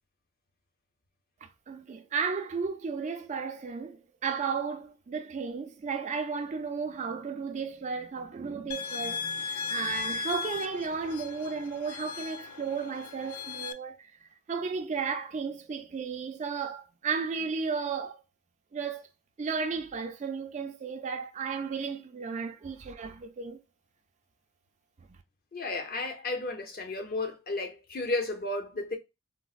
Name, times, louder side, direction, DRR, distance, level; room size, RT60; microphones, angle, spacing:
voice 1, 1.7-14.1 14.5-18.2 18.7-19.1 19.4-23.6, right 5 dB, 30° right, 0.3 m, -34 dB
sound 1, 8.7-13.7, left 5 dB, 90° left, 0.4 m, -37 dB
voice 2, 25.5-29.0, left 2 dB, 40° left, 0.6 m, -33 dB
3.9 x 2.0 x 2.4 m
head